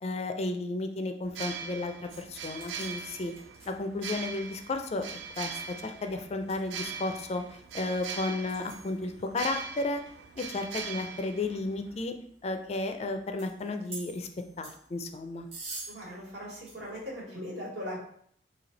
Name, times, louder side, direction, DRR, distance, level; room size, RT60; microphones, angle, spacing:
voice 1, 0.0-3.3 3.7-5.1 5.4-10.0 10.4-12.1 12.4-14.3 14.6-15.5, left 2 dB, 35° left, 6 dB, 0.4 m, -33 dB
sound 1, 1.2-12.0, right 6 dB, 80° right, 0.3 m, -41 dB
sound 2, 2.1-17.2, right 2 dB, 35° right, 0.9 m, -51 dB
voice 2, 15.9-18.0, equal, 65° right, -4 dB, 1.5 m, -39 dB
3.2 x 2.7 x 3.8 m, 0.65 s
head